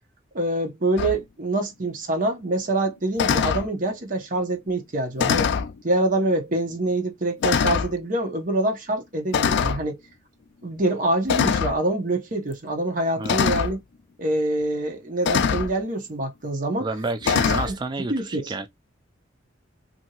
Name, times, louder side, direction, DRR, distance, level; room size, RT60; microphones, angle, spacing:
voice 1, 0.3-5.5 5.8-10.0 10.6-13.8 14.2-16.9 17.3-17.4 17.6-17.8 18.1-18.5, right 1 dB, 45° right, 0.9 m, -25 dB
sound 1, 1.0-1.2 3.2-3.7 5.2-5.7 6.6-6.7 7.4-7.9 9.3-9.8 11.3-11.8 13.2-13.7 15.2-15.7 17.2-17.7, left 6 dB, 60° left, 0.3 m, -22 dB
voice 2, 13.2-13.5 16.8-18.7, right 2 dB, 20° right, 0.3 m, -30 dB
2.8 x 2.6 x 2.8 m
head